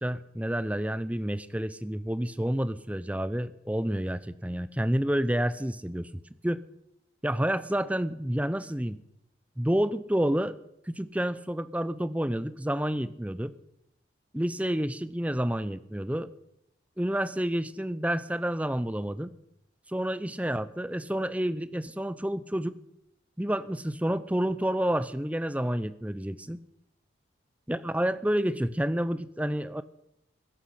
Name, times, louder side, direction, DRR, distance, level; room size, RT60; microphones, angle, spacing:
voice 1, 0.0-6.1 6.4-6.6 7.2-9.0 9.6-10.6 10.9-13.5 14.3-16.3 17.0-19.3 19.9-22.8 23.4-26.6 27.7-29.8, equal, 5° right, 14 dB, 0.6 m, -29 dB
21.0 x 11.5 x 5.8 m, 0.80 s
head